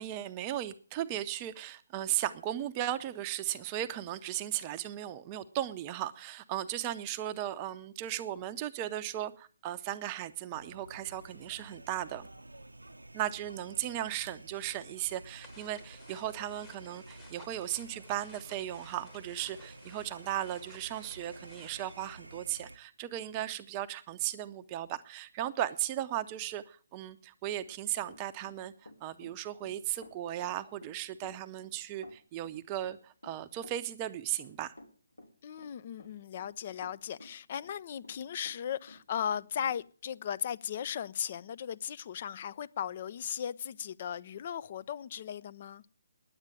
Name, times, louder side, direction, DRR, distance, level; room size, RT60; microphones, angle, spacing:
voice 1, 0.0-12.3 13.1-34.7, right 12 dB, 25° right, 0.6 m, -36 dB
sound 1, 10.5-22.8, right 2 dB, 85° right, 0.7 m, -51 dB
sound 2, 15.4-22.1, left 3 dB, 15° left, 1.4 m, -58 dB
Run, 27.4-38.6 38.9-39.8, left 1 dB, 85° left, 3.1 m, -54 dB
voice 2, 35.4-45.8, left 9 dB, 40° left, 0.5 m, -37 dB
10.5 x 8.9 x 8.9 m
figure-of-eight pair, 140°, 0 cm